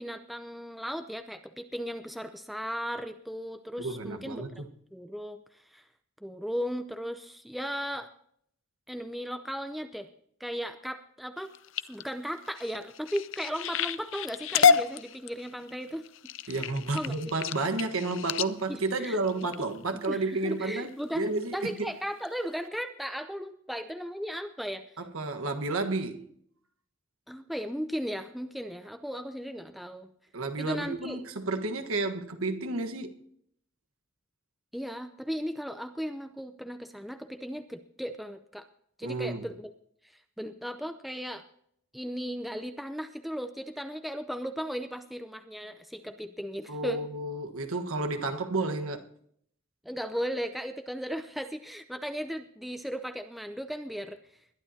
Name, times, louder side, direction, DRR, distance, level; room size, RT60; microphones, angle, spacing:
voice 1, 0.0-4.4 4.9-5.9 6.2-8.1 8.9-10.1 10.4-11.5 11.9-16.1 16.4-16.5 16.9-17.3 18.7-19.2 19.6-24.9 27.3-30.1 30.6-31.2 34.7-38.6 39.0-39.7 40.4-41.4 41.9-47.0 49.8-54.2, equal, ahead, 0.6 m, -36 dB
voice 2, 3.8-4.7 16.5-21.9 25.0-26.3 30.3-33.1 39.0-39.5 46.7-49.1, right 2 dB, 85° right, 1.4 m, -31 dB
sound 1, 11.4-20.1 20.6-21.0 21.4-21.8 22.2-22.3 22.6-22.7, left 6 dB, 65° left, 0.6 m, -29 dB
21.5 x 11.5 x 2.8 m
head